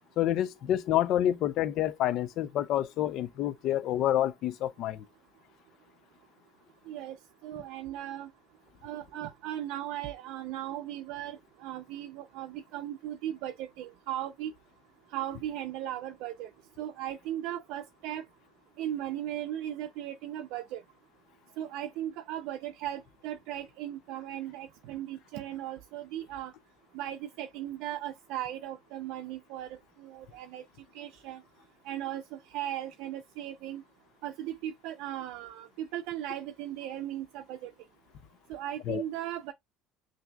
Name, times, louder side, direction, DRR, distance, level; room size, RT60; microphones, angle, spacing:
voice 1, 0.2-5.0 38.9-39.0, left 12 dB, 55° left, 0.4 m, -28 dB
voice 2, 6.9-7.2 7.4-8.3 8.8-14.5 15.1-16.5 16.8-18.2 18.8-20.8 21.6-26.5 26.9-30.6 30.9-31.4 31.8-33.8 34.2-37.7 38.5-39.5, right 12 dB, 70° right, 0.5 m, -37 dB
5.8 x 2.6 x 2.2 m
cardioid pair, 140°, 0 cm